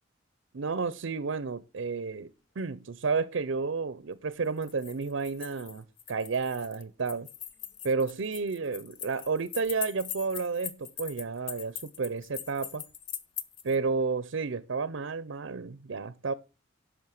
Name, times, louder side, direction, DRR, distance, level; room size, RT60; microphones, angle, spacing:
voice 1, 0.5-2.3 2.6-7.3 7.8-12.8 13.6-16.3, right 4 dB, 65° right, 0.6 m, -31 dB
sound 1, 4.4-13.8, left 9 dB, 65° left, 1.0 m, -41 dB
10.5 x 6.3 x 6.4 m
head